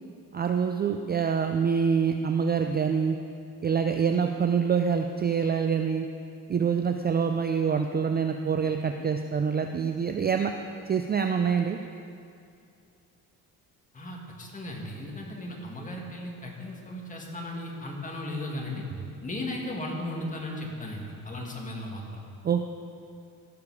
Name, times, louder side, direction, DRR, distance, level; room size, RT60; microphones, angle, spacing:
voice 1, 0.3-3.2 3.6-6.1 6.5-10.5 10.9-11.8 22.4-22.7, right 6 dB, 25° right, 5 dB, 0.4 m, -26 dB
voice 2, 13.9-18.9 19.2-22.2, left 1 dB, 20° left, -1 dB, 1.9 m, -36 dB
17.0 x 6.8 x 4.8 m, 2.4 s
cardioid pair, 130°, 37 cm